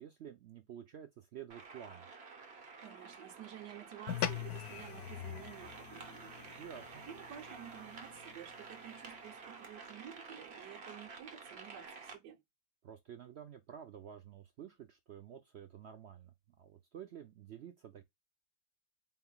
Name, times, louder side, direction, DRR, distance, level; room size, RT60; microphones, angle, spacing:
voice 1, 0.0-2.1 6.6-7.1 12.8-18.0, right 9 dB, 70° right, 0.6 m, -50 dB
sound 1, 1.5-12.1, right 4 dB, 45° right, 1.1 m, -51 dB
voice 2, 2.8-6.6 7.1-12.4, right 10 dB, 90° right, 1.4 m, -52 dB
sound 2, 4.1-8.7, left 11 dB, 70° left, 1.0 m, -42 dB
4.4 x 3.7 x 2.3 m
omnidirectional pair, 1.7 m